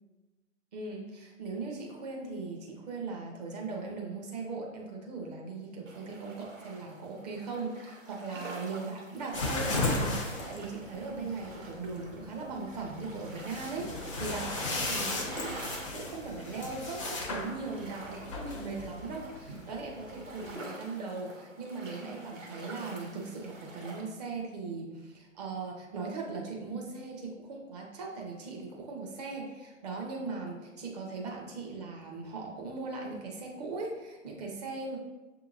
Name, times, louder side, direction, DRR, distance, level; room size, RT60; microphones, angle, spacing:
voice 1, 0.7-15.6 15.9-35.0, right 3 dB, 30° right, -1 dB, 0.8 m, -39 dB
sound 1, 5.9-24.0, right 2 dB, 75° right, 1.3 m, -47 dB
sound 2, 9.3-20.5, left 2 dB, 25° left, 0.5 m, -36 dB
6.5 x 2.8 x 2.6 m, 1.1 s
figure-of-eight pair, 125°, 39 cm